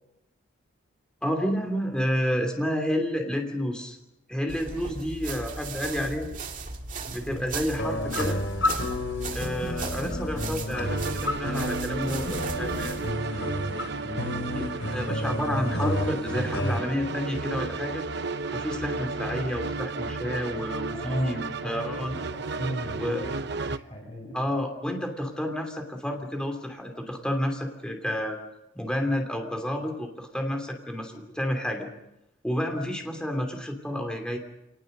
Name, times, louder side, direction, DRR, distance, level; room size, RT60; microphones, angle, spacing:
voice 1, 1.2-4.0 4.3-6.3 7.1-8.4 9.3-13.0 14.5-18.0 18.5-22.2 23.0-23.2 24.3-28.4 28.7-31.9 32.4-34.4, equal, 5° left, 3 dB, 2.9 m, -30 dB
sound 1, 4.5-13.1, right 3 dB, 40° right, 2.4 m, -37 dB
sound 2, 7.8-16.8, left 1 dB, 80° left, 3.7 m, -31 dB
sound 3, 10.8-23.8, right 3 dB, 60° right, 0.9 m, -33 dB
voice 2, 13.8-14.6 20.9-21.9 22.3-23.2 23.7-24.4, right 1 dB, 25° left, 1 dB, 6.9 m, -37 dB
28.0 x 19.5 x 6.7 m, 0.88 s
head